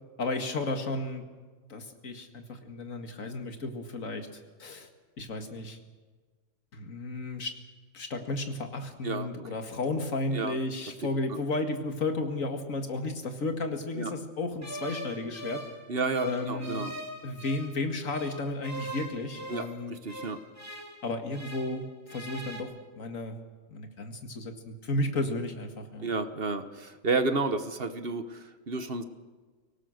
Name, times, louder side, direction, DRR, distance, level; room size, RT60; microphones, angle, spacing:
voice 1, 0.2-1.2 1.7-4.9 5.2-5.8 6.7-7.5 7.9-15.6 16.2-16.9 17.2-20.0 21.0-22.7 23.0-23.4 23.7-26.1, left 2 dB, 80° left, 6 dB, 2.3 m, -33 dB
sound 1, 14.6-17.8 18.1-21.8 22.1-22.6, equal, 10° right, 2.4 m, -42 dB
voice 2, 15.9-16.9 19.5-20.4 26.0-29.0, right 3 dB, 50° right, 10 dB, 1.3 m, -31 dB
24.5 x 18.0 x 6.5 m, 1.4 s
omnidirectional pair, 1.4 m